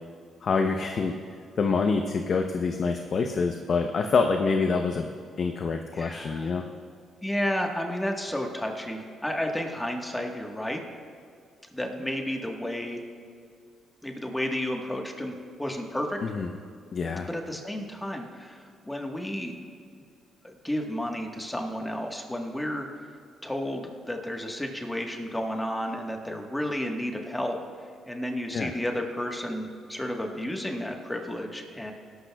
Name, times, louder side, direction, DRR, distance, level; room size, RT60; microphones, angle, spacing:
voice 1, 0.4-1.1 1.6-5.1 5.4-6.6 16.2-16.5 16.9-17.3 28.5-28.7, left 4 dB, 50° left, 5 dB, 0.7 m, -26 dB
voice 2, 5.9-6.5 7.2-10.8 11.7-13.0 14.0-16.2 17.3-19.5 20.4-22.9 23.4-27.6 28.1-31.9, left 1 dB, 10° left, 2 dB, 1.3 m, -32 dB
18.0 x 12.0 x 2.3 m, 2.2 s
cardioid pair, 90°, 0 cm